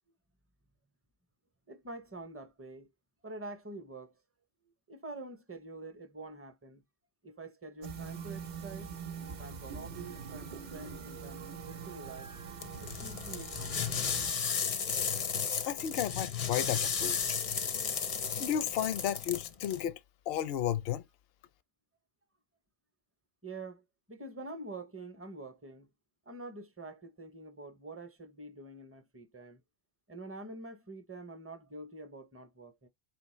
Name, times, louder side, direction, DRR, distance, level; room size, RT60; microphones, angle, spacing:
voice 1, 1.7-2.9 3.2-4.2 4.9-6.8 7.2-8.9 9.4-12.3 12.8-14.1 23.4-25.9 26.3-29.6 30.1-32.9, right 2 dB, 15° right, 0.5 m, -46 dB
sound 1, 7.8-14.3, right 6 dB, 50° right, 0.7 m, -43 dB
sound 2, 12.6-19.8, left 6 dB, 45° left, 0.5 m, -34 dB
voice 2, 15.7-17.2 18.4-20.0 20.3-21.0, left 10 dB, 75° left, 0.8 m, -33 dB
4.9 x 3.0 x 3.1 m
omnidirectional pair, 1.0 m